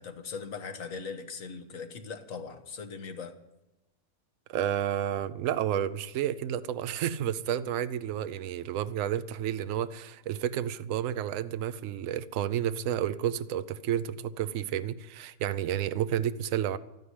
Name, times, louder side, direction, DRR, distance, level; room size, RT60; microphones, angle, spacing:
voice 1, 0.0-3.4, left 5 dB, 65° left, 7 dB, 1.6 m, -40 dB
voice 2, 4.5-16.8, right 10 dB, 65° right, 13 dB, 1.0 m, -31 dB
12.5 x 9.4 x 9.7 m, 0.95 s
omnidirectional pair, 1.6 m